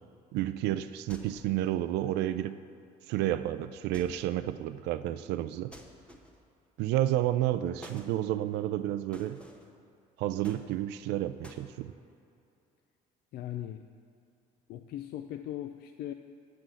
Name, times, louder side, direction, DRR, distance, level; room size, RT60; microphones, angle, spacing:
voice 1, 0.3-2.6 3.1-5.7 6.8-9.4 10.2-11.9, right 13 dB, 85° right, 12 dB, 0.4 m, -30 dB
sound 1, 1.1-1.6 3.9-4.4 5.7-6.5 7.8-8.1 9.1-9.7 10.4-11.1 11.4-11.7, equal, 5° left, 1.1 m, -51 dB
voice 2, 13.3-13.8 14.7-16.1, left 12 dB, 70° left, 8 dB, 0.4 m, -39 dB
8.5 x 6.1 x 7.8 m, 2.5 s
cardioid pair, 110°, 17 cm